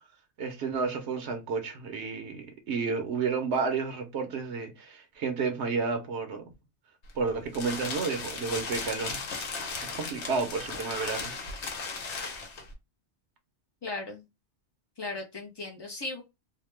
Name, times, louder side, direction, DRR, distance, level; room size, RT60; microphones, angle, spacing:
voice 1, 0.4-6.4 7.2-9.5 9.8-11.3, right 4 dB, 80° right, 1.0 m, -31 dB
sound 1, 7.0-12.7, left 4 dB, 85° left, 1.1 m, -36 dB
voice 2, 13.8-14.2 15.0-16.2, left 3 dB, 40° left, 0.3 m, -37 dB
2.8 x 2.1 x 3.1 m
omnidirectional pair, 1.1 m